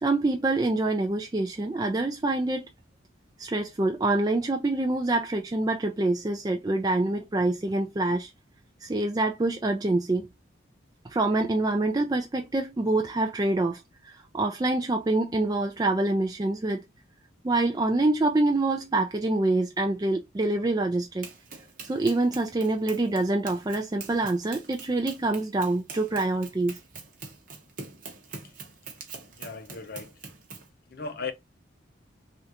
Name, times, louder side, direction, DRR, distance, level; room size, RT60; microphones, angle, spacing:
voice 1, 0.0-2.7 3.4-8.3 8.8-10.3 11.0-16.8 17.4-21.3 21.9-26.8, right 2 dB, 20° right, 0.3 m, -26 dB
Run, 21.2-30.7, right 4 dB, 45° right, 0.8 m, -44 dB
voice 2, 29.4-30.1 30.9-31.3, left 4 dB, 50° left, 0.6 m, -36 dB
3.3 x 2.4 x 2.8 m
head